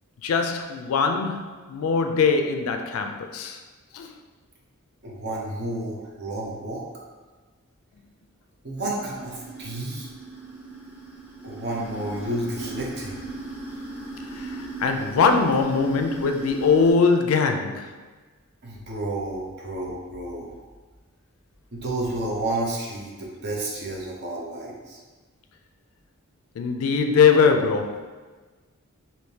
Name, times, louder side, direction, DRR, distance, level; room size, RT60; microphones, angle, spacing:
voice 1, 0.2-3.6 3.9-4.1 14.4-17.9 26.6-28.0, left 5 dB, 75° left, 5 dB, 0.4 m, -21 dB
voice 2, 5.0-6.8 8.6-10.1 11.4-13.2 18.6-20.5 21.7-25.0, right 1 dB, 50° right, -3 dB, 0.7 m, -31 dB
sound 1, 8.8-16.9, right 2 dB, 10° right, 0.7 m, -38 dB
3.5 x 2.7 x 2.8 m, 1.3 s
head